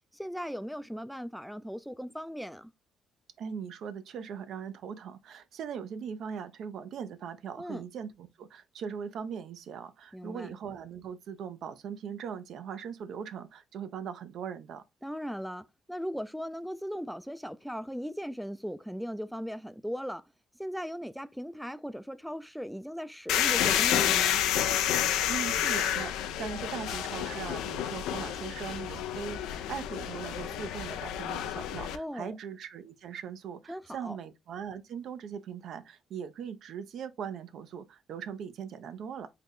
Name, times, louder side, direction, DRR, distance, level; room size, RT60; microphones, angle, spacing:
voice 1, 0.1-2.7 7.6-7.8 10.1-10.6 15.0-20.2 20.6-24.4 31.9-32.3 33.7-34.2, equal, ahead, 0.3 m, -38 dB
voice 2, 3.4-14.8 25.3-39.3, right 7 dB, 70° right, 0.5 m, -40 dB
sound 1, 23.3-32.0, left 10 dB, 90° left, 0.3 m, -29 dB
3.7 x 2.1 x 3.5 m
cardioid pair, 80°, 0 cm